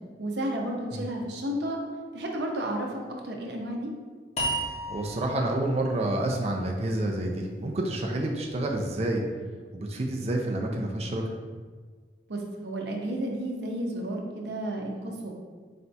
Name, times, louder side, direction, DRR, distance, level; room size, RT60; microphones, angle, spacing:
voice 1, 0.2-1.8 2.1-3.9 12.3-15.3, right 1 dB, 70° right, 0 dB, 0.7 m, -32 dB
sound 1, 4.4-7.6, right 1 dB, 35° left, 0.5 m, -35 dB
voice 2, 4.9-9.2 9.7-11.2, right 1 dB, 35° right, 0 dB, 0.4 m, -28 dB
4.2 x 2.3 x 4.0 m, 1.5 s
head